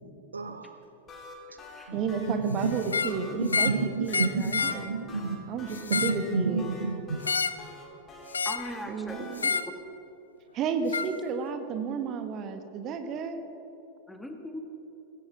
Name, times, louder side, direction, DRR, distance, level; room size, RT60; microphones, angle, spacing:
voice 1, 0.3-0.8 1.9-2.0 2.3-2.8 3.2-5.4 5.9-7.2, right 4 dB, 75° right, 10 dB, 0.8 m, -30 dB
sound 1, 0.8-9.3, left 3 dB, 25° left, 3.9 m, -46 dB
voice 2, 1.9-3.7 4.0-4.9 5.5-6.6 8.9-9.5 10.5-13.4, right 6 dB, 35° right, 7 dB, 1.5 m, -32 dB
sound 2, 2.8-3.2 3.5-3.8 4.1-4.8 5.7-6.2 7.2-7.6 8.3-8.7 9.4-9.7 10.9-11.1, left 5 dB, 75° left, 0.5 m, -28 dB
voice 3, 8.5-9.6 14.1-14.6, left 1 dB, 5° left, 4 dB, 1.7 m, -40 dB
20.0 x 17.0 x 3.7 m, 2.9 s
figure-of-eight pair, 90°, 0 cm